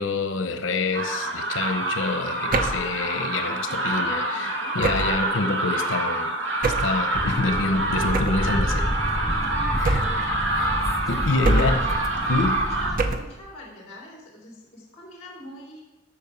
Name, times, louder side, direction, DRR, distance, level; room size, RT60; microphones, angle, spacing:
voice 1, 0.0-6.3 6.6-8.8 9.8-10.4 11.1-11.8 12.3-12.6, left 3 dB, 80° left, 8 dB, 0.9 m, -27 dB
sound 1, 0.9-12.9, right 2 dB, 70° right, 1.8 m, -27 dB
sound 2, 2.5-2.9 4.8-5.3 6.6-7.0 8.1-8.5 9.8-10.3 11.4-11.9 13.0-13.4, right 2 dB, 45° right, 0.7 m, -24 dB
sound 3, 7.1-13.2, equal, ahead, 0.5 m, -29 dB
voice 2, 11.1-11.9 12.2-12.3 12.6-15.8, left 1 dB, 35° left, -2 dB, 2.9 m, -43 dB
13.0 x 5.5 x 6.9 m, 1.0 s
head